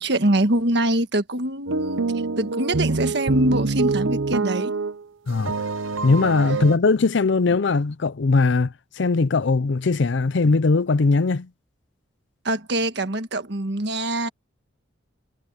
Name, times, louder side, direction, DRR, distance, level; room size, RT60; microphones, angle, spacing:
voice 1, 0.0-2.0 2.4-4.7 12.4-14.3, right 1 dB, 60° right, 1.5 m, -23 dB
sound 1, 1.7-5.0 5.3-6.8, right 3 dB, 85° right, 0.8 m, -25 dB
voice 2, 6.0-11.5, left 3 dB, 65° left, 0.5 m, -20 dB
head